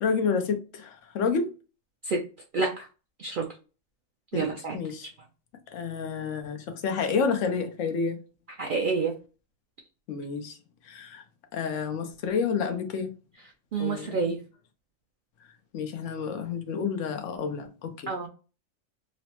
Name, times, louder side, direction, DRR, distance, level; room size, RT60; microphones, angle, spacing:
voice 1, 0.0-1.5 4.3-4.4 4.7-5.1 5.7-8.2 10.1-10.6 10.8-11.2 11.5-13.1 13.8-14.3 15.7-18.3, left 5 dB, 75° left, 6 dB, 1.0 m, -29 dB
voice 2, 2.5-2.9 3.2-3.5 4.3-4.8 8.6-9.1 13.7-14.4 18.1-18.3, right 4 dB, 65° right, 1 dB, 0.5 m, -28 dB
3.1 x 2.0 x 2.8 m, 0.34 s
omnidirectional pair, 1.3 m